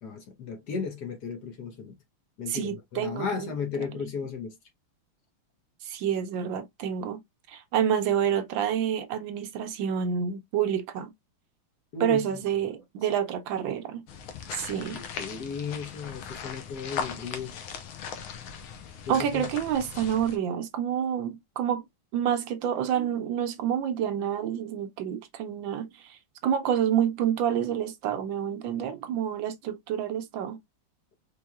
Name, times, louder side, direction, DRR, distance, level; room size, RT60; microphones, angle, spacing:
voice 1, 0.0-2.0 2.4-4.6 11.9-12.4 14.8-17.6 19.1-19.5, left 5 dB, 60° left, 1.4 m, -35 dB
voice 2, 2.5-3.5 3.8-3.9 5.8-7.2 7.5-11.1 12.0-14.0 14.5-15.0 19.1-21.8 22.1-30.6, right 9 dB, 75° right, 1.3 m, -28 dB
sound 1, 14.1-20.4, left 7 dB, 85° left, 1.7 m, -39 dB
4.6 x 3.3 x 2.3 m
omnidirectional pair, 2.3 m